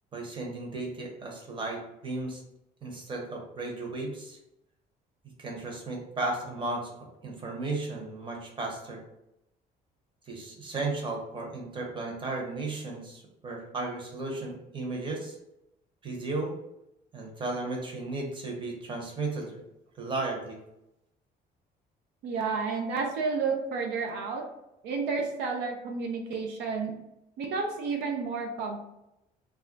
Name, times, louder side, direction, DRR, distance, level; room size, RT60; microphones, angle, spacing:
voice 1, 0.1-2.4 2.8-4.4 5.4-6.9 7.2-9.0 10.3-15.4 16.0-16.5 17.1-19.6 20.0-20.6, right 2 dB, 30° right, 0 dB, 0.8 m, -34 dB
voice 2, 22.2-24.4 24.8-27.0 27.4-28.8, right 4 dB, 80° right, 2 dB, 0.5 m, -31 dB
2.3 x 2.1 x 3.7 m, 0.86 s
cardioid pair, 110°, 17 cm